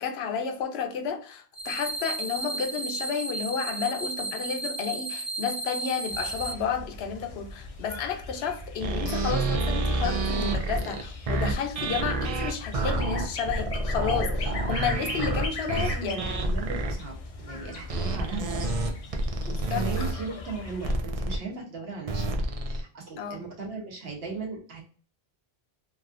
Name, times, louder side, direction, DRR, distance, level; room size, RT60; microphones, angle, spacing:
voice 1, 0.0-16.2 19.7-20.1 23.2-23.4, left 6 dB, 85° left, 0.8 m, -31 dB
sound 1, 1.5-6.5, right 3 dB, 20° right, 0.7 m, -34 dB
sound 2, 6.1-20.9, left 3 dB, 50° left, 0.4 m, -40 dB
sound 3, 8.8-16.9 17.9-20.1 20.8-21.4 22.1-22.8, right 2 dB, 50° right, 0.4 m, -28 dB
voice 2, 15.8-18.8 19.5-24.8, right 4 dB, 75° right, 1.1 m, -38 dB
3.1 x 2.4 x 2.4 m
omnidirectional pair, 1.0 m